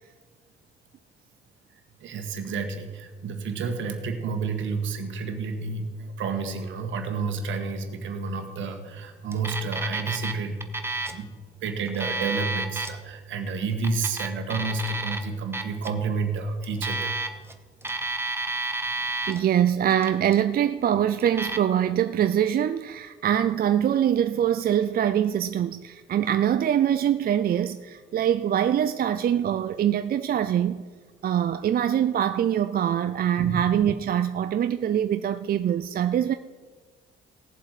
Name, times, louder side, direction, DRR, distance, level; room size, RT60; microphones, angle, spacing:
voice 1, 2.0-10.6 11.1-11.3 11.6-17.1 33.4-33.6, right 4 dB, 75° right, 1.6 m, -30 dB
Alarm, 9.3-10.3 10.6-11.2 11.8-12.9 13.7-15.2 15.5-15.9 16.6-17.5 17.8-19.4 19.9-20.4 21.2-21.6, right 2 dB, 10° right, 1.0 m, -30 dB
voice 2, 19.3-30.8 31.2-36.3, right 10 dB, 50° right, 0.4 m, -24 dB
17.5 x 7.4 x 4.9 m
cardioid pair, 90°, 20 cm